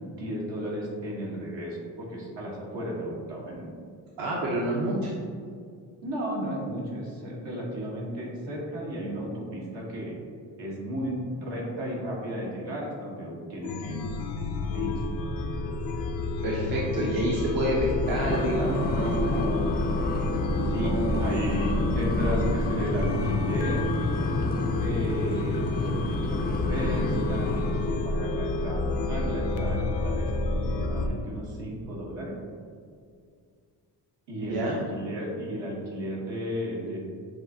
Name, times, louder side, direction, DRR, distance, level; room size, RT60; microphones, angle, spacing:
voice 1, 0.1-3.7 6.0-10.2 10.6-14.0 14.7-15.0 20.6-23.9 24.8-32.4 34.3-37.0, equal, 75° right, -3 dB, 1.4 m, -34 dB
voice 2, 4.2-5.1 16.4-19.6 20.7-21.3 34.4-34.9, right 1 dB, 55° right, -4 dB, 0.8 m, -28 dB
Chime, 13.6-31.1, left 2 dB, 85° left, 0.6 m, -29 dB
sound 1, 18.0-28.1, left 2 dB, 20° left, 0.4 m, -31 dB
7.5 x 2.5 x 2.7 m, 2.1 s
cardioid pair, 65°, 44 cm